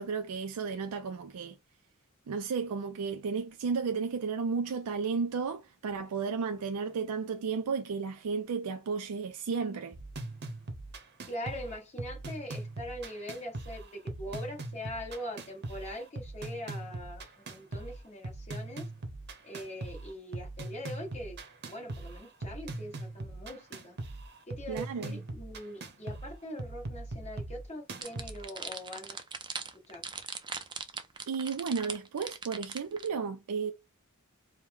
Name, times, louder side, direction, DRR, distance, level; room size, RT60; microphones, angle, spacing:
voice 1, 0.0-1.6 2.3-10.0 24.7-25.2 31.3-33.7, right 5 dB, 85° right, 0.4 m, -33 dB
sound 1, 9.9-28.4, right 2 dB, 50° right, 0.8 m, -41 dB
voice 2, 11.3-18.9 19.4-21.4 21.7-24.0 24.5-29.2 29.9-30.0, equal, 30° left, 1.4 m, -42 dB
sound 2, 28.0-33.1, right 5 dB, 20° right, 0.4 m, -40 dB
4.6 x 2.1 x 3.5 m
head